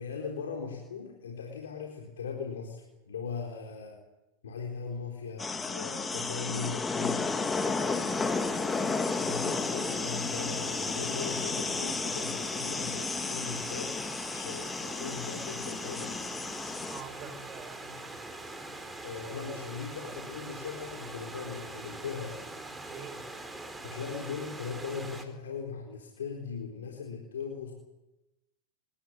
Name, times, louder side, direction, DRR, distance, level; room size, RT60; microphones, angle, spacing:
voice 1, 0.0-2.8 3.0-4.0 4.4-7.4 9.1-14.0 14.2-16.2 19.0-22.5 23.8-27.7, left 5 dB, 80° left, 1 dB, 4.3 m, -39 dB
sound 1, 5.4-17.0, left 4 dB, 15° left, 2.2 m, -33 dB
Stream / Liquid, 6.3-25.2, right 2 dB, 10° right, 3.9 m, -43 dB
voice 2, 7.5-8.3 16.9-18.3 22.9-23.3, right 6 dB, 35° right, 7 dB, 5.3 m, -46 dB
26.5 x 14.5 x 9.6 m, 1.0 s
hypercardioid pair, 100°, 0 cm